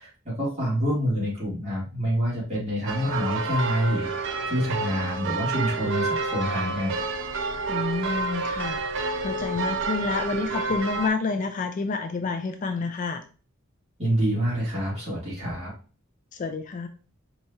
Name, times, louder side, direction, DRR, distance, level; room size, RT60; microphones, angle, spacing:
voice 1, 0.0-6.9 14.0-15.7, equal, 30° right, -6 dB, 2.1 m, -27 dB
sound 1, 2.9-11.1, right 3 dB, 60° right, 0.4 m, -29 dB
voice 2, 7.7-13.2 16.3-16.9, left 4 dB, 35° left, 6 dB, 0.3 m, -29 dB
4.6 x 2.8 x 2.8 m, 0.37 s
head